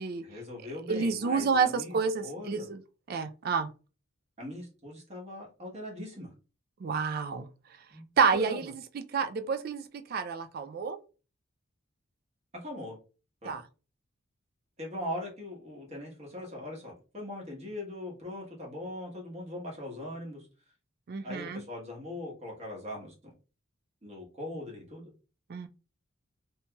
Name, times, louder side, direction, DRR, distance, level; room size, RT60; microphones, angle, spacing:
voice 1, 0.2-2.7 4.4-6.3 7.9-8.6 12.5-13.0 13.4-13.5 14.8-20.5 21.2-23.3 24.0-25.1, left 1 dB, 30° right, 1.1 m, -40 dB
voice 2, 0.9-2.8 3.1-3.7 6.8-7.5 8.2-9.8 10.1-11.0 13.4-13.6 21.1-21.6 25.5-25.7, right 5 dB, 45° right, 0.3 m, -29 dB
2.8 x 2.8 x 2.2 m
head